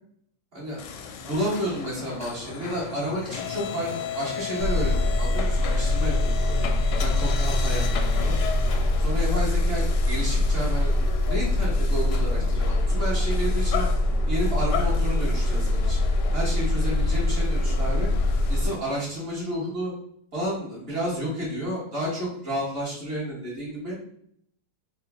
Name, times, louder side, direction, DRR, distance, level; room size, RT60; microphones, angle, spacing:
sound 1, 0.8-18.8, left 6 dB, 90° left, 1.2 m, -35 dB
voice 1, 1.2-6.7 7.0-8.4 9.0-11.0 11.3-13.9 14.3-16.0 16.3-18.1 18.5-19.9 20.3-24.0, equal, 35° right, -7 dB, 1.7 m, -31 dB
sound 2, 4.6-18.7, left 1 dB, 80° right, 1.6 m, -23 dB
3.6 x 2.4 x 3.5 m, 0.69 s
omnidirectional pair, 1.8 m